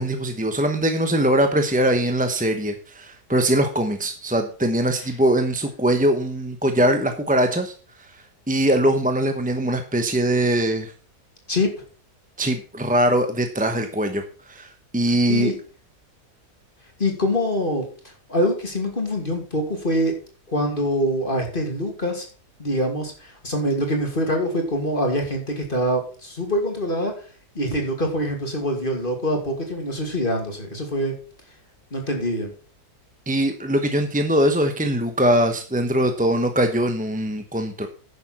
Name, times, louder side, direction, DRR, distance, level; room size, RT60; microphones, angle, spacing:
voice 1, 0.0-7.7 8.5-10.9 12.4-14.2 14.5-15.5 33.3-37.9, right 1 dB, 5° right, 6 dB, 0.7 m, -21 dB
voice 2, 17.0-17.9 18.3-20.1 20.5-22.2 22.6-27.1 27.5-31.1 31.9-32.5, equal, 30° left, 2 dB, 2.7 m, -24 dB
10.0 x 7.1 x 5.9 m, 0.39 s
omnidirectional pair, 1.7 m